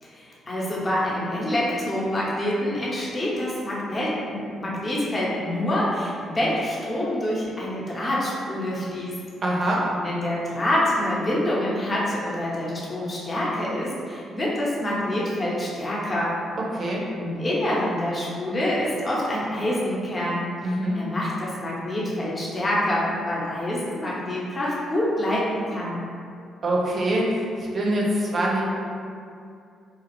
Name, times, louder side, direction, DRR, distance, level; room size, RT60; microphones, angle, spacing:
voice 1, 0.0-9.2 10.0-16.3 16.8-16.9 17.1-26.0, left 1 dB, 30° left, -6 dB, 0.8 m, -26 dB
voice 2, 9.4-9.8 16.7-17.0 20.6-21.0 26.6-27.3 27.7-28.6, right 1 dB, 45° right, -3 dB, 0.5 m, -24 dB
2.9 x 2.4 x 3.0 m, 2.4 s
figure-of-eight pair, 40°, 0 cm